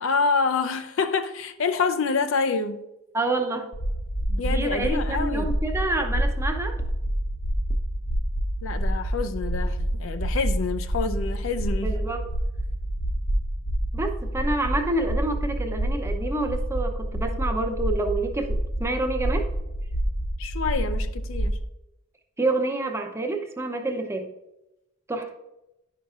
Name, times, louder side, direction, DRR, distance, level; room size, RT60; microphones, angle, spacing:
voice 1, 0.0-2.8 4.4-5.5 8.6-12.0 20.4-21.6, left 4 dB, 70° left, 0.5 m, -27 dB
voice 2, 3.1-3.7 4.3-6.8 11.8-12.2 13.9-19.5 22.4-24.3 25.1-25.3, right 2 dB, 15° right, 0.6 m, -28 dB
sound 1, 3.7-21.6, right 1 dB, 50° left, 1.2 m, -27 dB
10.5 x 5.6 x 2.4 m
head